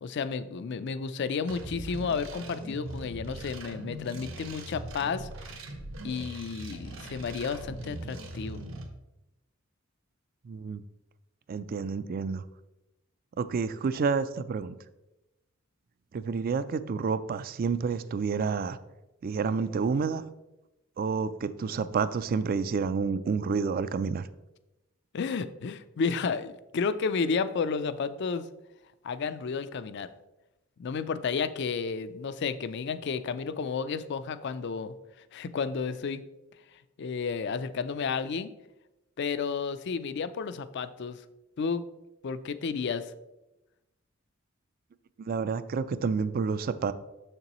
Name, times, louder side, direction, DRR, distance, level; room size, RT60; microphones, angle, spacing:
voice 1, 0.0-5.3 6.0-8.6 25.1-28.5 29.0-30.1 30.8-35.0 35.3-36.2 37.0-38.5 39.2-41.2 41.6-41.8 42.2-43.1, left 5 dB, 55° left, 13 dB, 0.4 m, -32 dB
sound 1, 1.5-8.8, right 1 dB, 70° right, 0.9 m, -41 dB
voice 2, 10.4-10.8 11.5-12.4 13.4-14.7 16.1-18.8 19.2-20.2 21.0-24.3 45.2-46.9, right 5 dB, 45° right, 14 dB, 0.3 m, -29 dB
6.8 x 6.6 x 3.0 m, 0.96 s
head